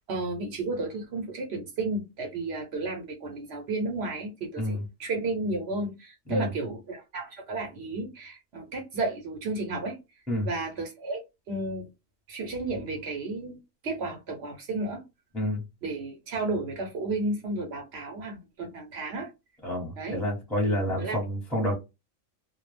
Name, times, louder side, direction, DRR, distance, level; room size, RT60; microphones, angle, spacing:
voice 1, 0.1-10.0 10.4-11.9 12.3-13.6 13.8-15.0 15.8-19.3 20.0-20.2 21.0-21.2, right 2 dB, 60° right, 0.9 m, -32 dB
voice 2, 19.6-21.8, equal, ahead, 0.8 m, -28 dB
2.3 x 2.0 x 3.2 m
omnidirectional pair, 1.3 m